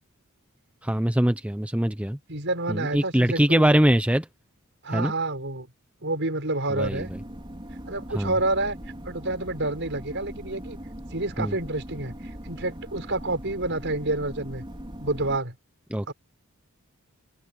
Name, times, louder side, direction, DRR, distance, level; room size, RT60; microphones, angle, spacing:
voice 1, 0.8-2.2 2.7-4.3 4.9-5.1 6.7-7.2 8.1-8.3 11.4-11.5 15.9-16.1, right 1 dB, 5° right, 0.7 m, -23 dB
voice 2, 2.3-3.7 4.8-5.7 6.0-7.1 7.9-8.8 9.0-10.8 11.1-14.6 15.0-15.5 16.1-16.2, right 2 dB, 55° right, 6.6 m, -29 dB
sound 1, 6.8-15.4, equal, 25° right, 4.3 m, -40 dB
open air
head